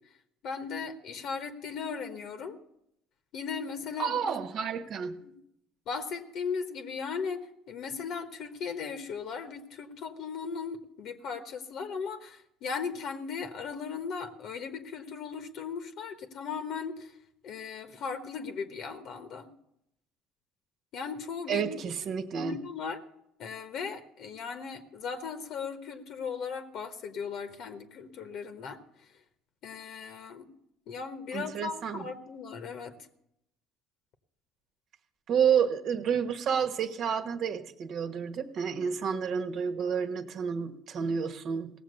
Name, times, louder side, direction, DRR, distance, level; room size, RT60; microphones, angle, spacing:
voice 1, 0.4-2.6 3.3-4.4 5.2-5.3 5.9-7.4 7.7-17.1 17.4-19.5 20.9-21.8 22.3-23.0 23.4-28.8 29.6-30.5 30.9-33.0, left 5 dB, 65° left, 8 dB, 1.2 m, -37 dB
voice 2, 4.0-5.2 21.5-22.6 31.3-32.0 35.3-41.7, right 7 dB, 55° right, 9 dB, 1.2 m, -30 dB
17.0 x 7.2 x 6.7 m, 0.79 s
supercardioid pair, 90°, 0 cm